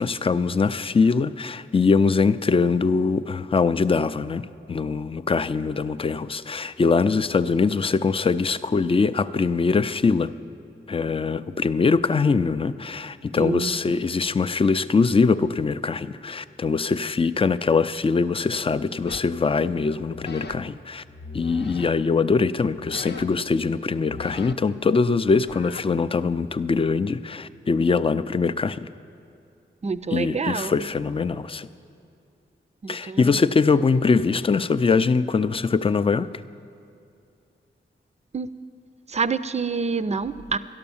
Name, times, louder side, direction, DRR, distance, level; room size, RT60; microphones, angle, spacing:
voice 1, 0.0-10.3 10.9-21.0 21.3-28.9 30.1-31.7 32.9-36.3, left 4 dB, 25° left, 13 dB, 0.4 m, -22 dB
voice 2, 13.4-13.8 29.8-30.9 32.8-33.3 38.3-38.5 39.1-40.6, right 5 dB, 35° right, 14 dB, 0.4 m, -27 dB
sound 1, 19.0-19.3 20.0-20.6 21.0-21.9 22.7-23.5 23.9-25.8, left 4 dB, 55° left, 0.7 m, -40 dB
12.0 x 12.0 x 7.1 m, 2.6 s
wide cardioid pair, 80°, 20 cm